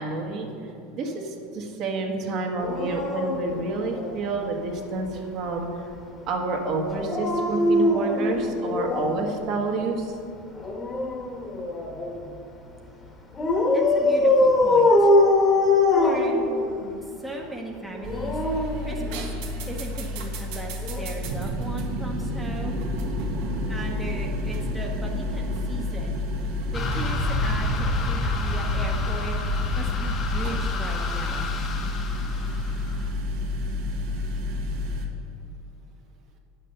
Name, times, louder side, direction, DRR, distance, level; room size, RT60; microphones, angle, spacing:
voice 1, 0.0-5.7 6.3-10.1, right 3 dB, 50° right, 1 dB, 1.5 m, -29 dB
Dog, 2.6-4.4 6.9-9.3 10.6-12.2 13.4-16.9 17.9-19.6 20.8-21.0, left 2 dB, 20° left, 1.3 m, -22 dB
voice 2, 13.7-15.1 15.9-16.3 17.0-19.4 19.7-22.8 23.7-26.2 26.7-31.5, right 2 dB, 5° right, -2 dB, 1.0 m, -37 dB
sound 1, 18.0-35.1, left 1 dB, 75° right, 1.7 m, -30 dB
sound 2, 26.7-33.1, left 2 dB, 35° left, 1.0 m, -29 dB
9.1 x 6.5 x 6.6 m, 2.6 s
supercardioid pair, 130°, 0 cm